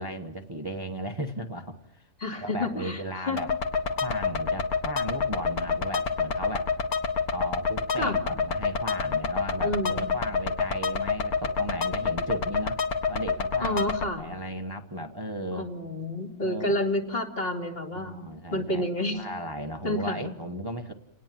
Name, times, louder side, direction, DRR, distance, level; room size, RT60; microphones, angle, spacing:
voice 1, 0.0-3.5 3.9-6.7 7.3-12.8 13.1-15.7 16.4-16.7 17.9-18.9 19.1-20.9, equal, 15° right, 6 dB, 1.1 m, -36 dB
voice 2, 2.2-3.4 8.0-8.2 9.6-10.1 13.6-14.2 15.5-18.2 18.5-19.2 19.8-20.2, left 1 dB, 40° left, 1 dB, 3.1 m, -29 dB
sound 1, 3.4-14.0, left 5 dB, 75° left, 2.1 m, -28 dB
29.5 x 19.0 x 7.6 m, 0.86 s
omnidirectional pair, 1.6 m